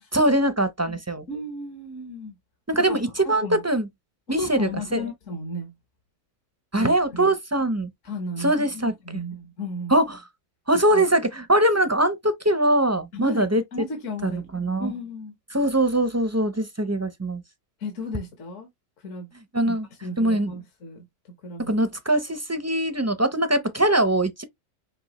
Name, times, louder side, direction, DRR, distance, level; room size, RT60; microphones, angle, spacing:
voice 1, 0.1-1.3 2.7-3.9 4.3-5.0 6.7-7.9 8.4-9.2 9.9-10.2 10.7-13.6 14.2-14.9 15.5-17.4 19.5-19.9 20.2-20.5 21.6-24.4, right 1 dB, 20° right, 0.4 m, -22 dB
voice 2, 1.3-2.3 2.9-3.6 4.4-5.7 6.8-7.2 8.0-10.0 10.7-11.0 13.1-13.5 13.7-14.5 14.8-15.3 17.8-18.7 19.0-19.3 19.6-19.8 20.0-21.0 21.4-21.7, left 1 dB, 70° left, 1.5 m, -34 dB
6.1 x 2.8 x 3.0 m
omnidirectional pair, 1.4 m